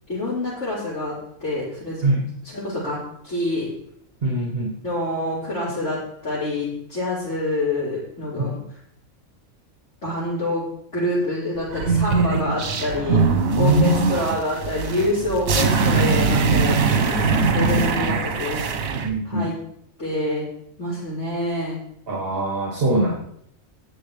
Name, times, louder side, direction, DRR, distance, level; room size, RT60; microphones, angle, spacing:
voice 1, 0.1-1.1 1.4-2.1 2.5-3.0 3.2-3.7 4.8-8.6 10.0-10.6 10.9-13.2 13.6-17.2 17.5-18.6 19.2-19.6 20.0-20.4 20.8-21.8, left 1 dB, 60° left, -12 dB, 5.5 m, -26 dB
voice 2, 4.2-4.8 8.4-8.5 13.4-13.9 19.0-19.5 22.1-23.1, right 1 dB, 45° right, -2 dB, 2.3 m, -22 dB
sound 1, 11.7-19.1, right 4 dB, 75° right, 1.6 m, -21 dB
19.5 x 7.4 x 3.4 m, 0.71 s
omnidirectional pair, 1.4 m